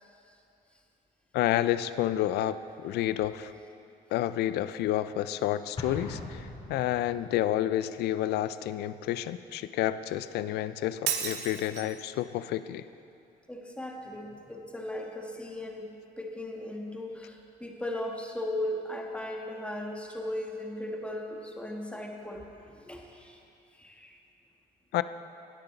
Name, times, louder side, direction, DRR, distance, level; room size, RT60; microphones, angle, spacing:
voice 1, 1.3-3.5 4.1-12.8 24.9-25.0, left 13 dB, 75° left, 13 dB, 0.5 m, -30 dB
Explosion, 5.8-7.4, left 2 dB, 35° left, 2.7 m, -40 dB
Shatter, 11.1-12.0, right 9 dB, 80° right, 1.0 m, -32 dB
voice 2, 13.5-23.4 23.8-24.2, left 1 dB, 5° left, 1 dB, 1.4 m, -37 dB
16.5 x 9.8 x 4.1 m, 2.7 s
cardioid pair, 110°, 17 cm